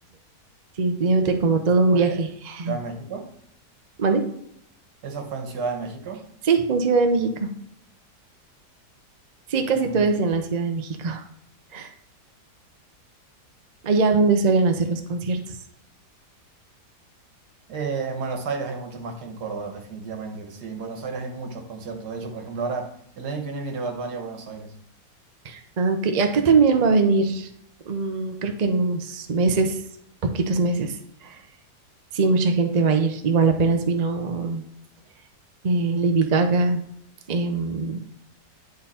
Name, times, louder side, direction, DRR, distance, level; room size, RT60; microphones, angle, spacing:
voice 1, 0.8-2.8 4.0-4.2 6.4-7.5 9.5-11.2 11.7-11.9 13.8-15.6 25.4-27.5 27.9-29.8 30.3-31.0 31.2-31.4 32.1-34.6 35.6-36.8 37.3-38.0, right 4 dB, 45° right, 5 dB, 0.5 m, -21 dB
voice 2, 2.7-3.3 5.0-6.2 9.7-10.1 17.7-24.7, right 4 dB, 75° right, 4 dB, 1.7 m, -32 dB
10.0 x 3.8 x 4.2 m, 0.71 s
omnidirectional pair, 1.8 m